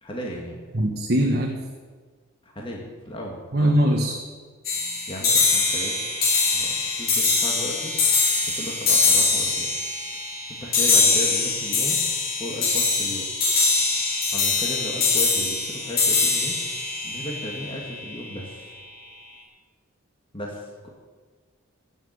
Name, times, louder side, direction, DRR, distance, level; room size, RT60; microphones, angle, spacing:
voice 1, 0.0-0.6 2.4-3.9 5.1-6.0 6.5-9.7 10.2-12.0 12.4-13.3 14.3-16.5 17.0-18.7 20.3-20.9, left 1 dB, 25° left, -1 dB, 2.1 m, -35 dB
voice 2, 0.7-1.6 3.5-4.2, right 1 dB, 50° right, 2 dB, 1.3 m, -21 dB
sound 1, 4.6-18.1, left 4 dB, 45° left, 3.7 m, -23 dB
16.0 x 7.4 x 8.7 m, 1.5 s
head